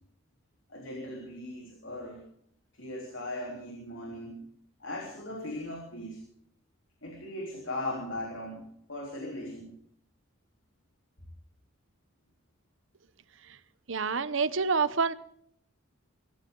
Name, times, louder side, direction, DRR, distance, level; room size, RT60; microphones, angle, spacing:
voice 1, 0.7-2.2 2.7-4.4 4.8-6.2 7.0-8.6 8.9-9.7, left 1 dB, 65° left, 0 dB, 3.7 m, -38 dB
voice 2, 13.9-15.1, right 5 dB, 65° right, 15 dB, 0.8 m, -27 dB
24.0 x 15.0 x 3.9 m, 0.70 s
head